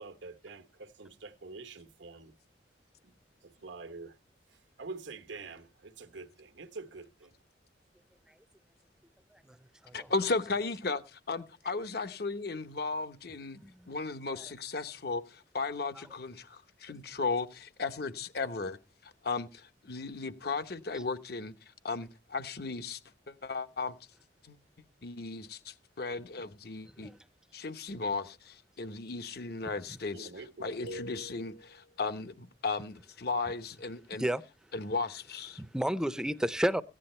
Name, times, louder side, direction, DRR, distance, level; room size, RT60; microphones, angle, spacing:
voice 1, 0.0-2.3 3.0-3.1 3.4-4.2 4.5-7.3 30.1-31.0, right 3 dB, 90° right, 1.2 m, -46 dB
voice 2, 9.9-13.6 13.9-18.8 19.2-21.5 21.8-23.0 23.3-23.9 24.5-24.6 25.0-27.1 27.5-30.3 30.6-34.3 34.7-35.6, left 3 dB, 60° left, 0.9 m, -35 dB
voice 3, 13.5-13.9 14.3-14.5 16.0-16.1 20.9-21.0 27.0-27.2 29.9-30.0 34.1-34.4 35.6-36.8, right 1 dB, 5° right, 0.6 m, -33 dB
sound 1, 30.9-32.0, left 2 dB, 90° left, 4.1 m, -46 dB
15.5 x 10.0 x 4.3 m
head